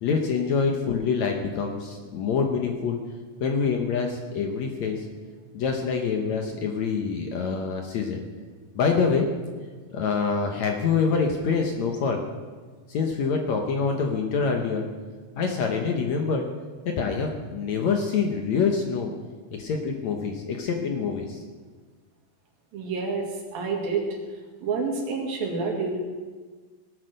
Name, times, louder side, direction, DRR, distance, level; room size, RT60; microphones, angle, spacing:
voice 1, 0.0-3.0 3.4-5.0 5.5-8.2 8.8-9.3 9.9-12.2 12.9-14.9 15.4-16.5 16.9-19.1 19.5-21.4, left 5 dB, 65° left, 3 dB, 2.0 m, -26 dB
voice 2, 22.7-24.1 24.6-26.0, right 4 dB, 75° right, 1 dB, 3.9 m, -28 dB
17.5 x 9.1 x 6.6 m, 1.4 s
omnidirectional pair, 4.2 m